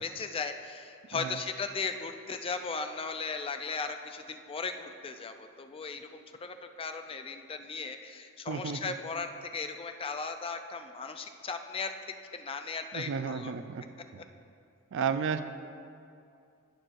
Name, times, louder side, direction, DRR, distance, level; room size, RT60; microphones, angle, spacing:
voice 1, 0.0-11.9 12.3-13.5 14.2-14.3, left 4 dB, 25° left, 7 dB, 0.4 m, -37 dB
voice 2, 8.5-8.9 12.9-13.8 14.1-14.2 14.9-15.4, right 6 dB, 60° right, 10 dB, 0.4 m, -33 dB
16.5 x 6.2 x 2.5 m, 2.5 s
head